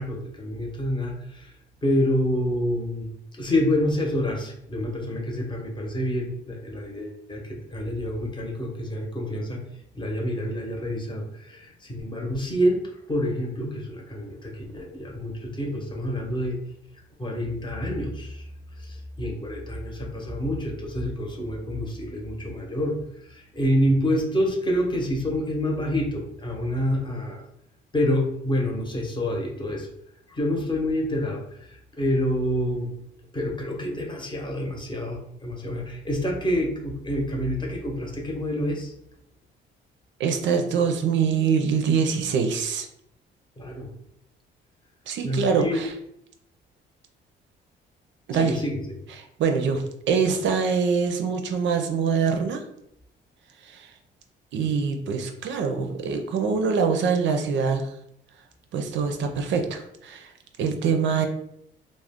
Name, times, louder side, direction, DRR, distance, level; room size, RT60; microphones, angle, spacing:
voice 1, 0.0-1.5 1.8-9.6 10.0-12.8 13.1-16.6 17.2-18.4 18.8-23.0 23.3-27.4 27.9-29.9 30.3-32.9 33.3-38.9 43.6-43.9 45.2-45.8 48.3-49.0, equal, 25° left, 0 dB, 0.8 m, -27 dB
voice 2, 40.2-42.9 45.1-45.9 48.3-48.6 49.1-52.6 53.6-53.9 54.5-57.9 58.7-60.3 60.6-61.3, right 6 dB, 70° right, 5 dB, 0.4 m, -24 dB
2.3 x 2.1 x 3.5 m, 0.75 s
cardioid pair, 90°, 20 cm